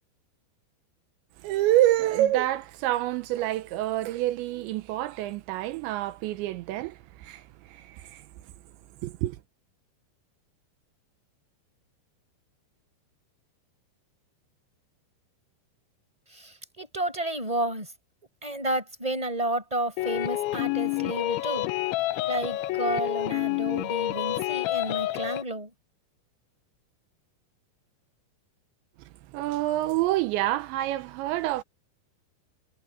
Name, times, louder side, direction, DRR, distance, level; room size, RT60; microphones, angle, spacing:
voice 1, 1.4-8.3 9.0-9.4 29.3-31.6, right 14 dB, 85° right, 3.1 m, -27 dB
voice 2, 16.3-17.9 18.4-21.7 22.3-25.7, right 1 dB, 5° right, 6.6 m, -31 dB
sound 1, 20.0-25.4, left 17 dB, 85° left, 3.2 m, -28 dB
omnidirectional pair, 5.3 m